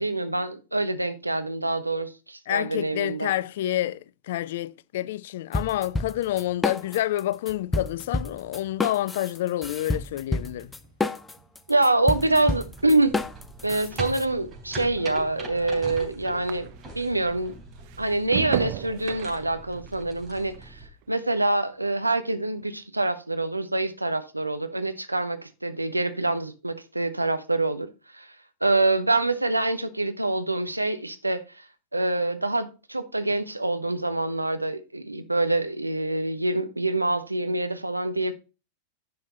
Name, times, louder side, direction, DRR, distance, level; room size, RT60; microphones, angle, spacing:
voice 1, 0.0-3.3 11.7-13.2 13.6-16.7 16.9-17.5 18.0-20.8 21.1-27.9 28.1-28.3 28.6-31.6 31.9-38.3, right 2 dB, 85° right, 1.0 m, -26 dB
voice 2, 2.5-10.7, left 14 dB, 55° left, 0.4 m, -28 dB
sound 1, 5.5-7.2 7.5-14.2, left 2 dB, 10° left, 0.6 m, -29 dB
sound 2, 10.4-17.1 17.5-22.0 22.3-22.8, right 16 dB, 45° right, 0.6 m, -39 dB
sound 3, 12.1-20.9, right 2 dB, 25° right, 3.3 m, -41 dB
10.5 x 5.6 x 4.1 m
figure-of-eight pair, 90°, 0 cm